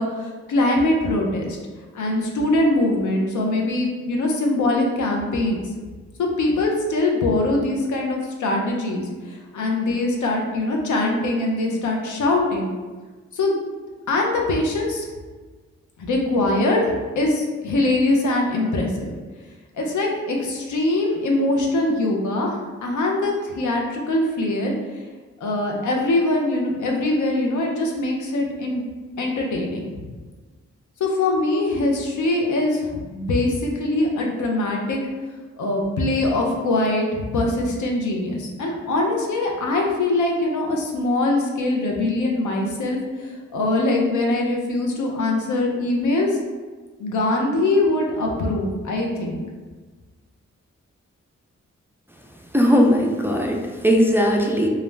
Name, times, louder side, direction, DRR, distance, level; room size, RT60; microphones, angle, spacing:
voice 1, 0.0-1.6 1.9-5.7 6.2-12.7 13.3-13.6 14.1-15.1 16.0-19.1 19.8-25.0 25.4-28.8 29.2-30.1 31.0-35.0 35.6-46.4 47.0-49.4, left 2 dB, 80° left, 0 dB, 0.5 m, -22 dB
voice 2, 52.5-54.7, equal, 10° right, 0 dB, 0.3 m, -18 dB
2.4 x 2.0 x 3.2 m, 1.3 s
cardioid pair, 45°, 29 cm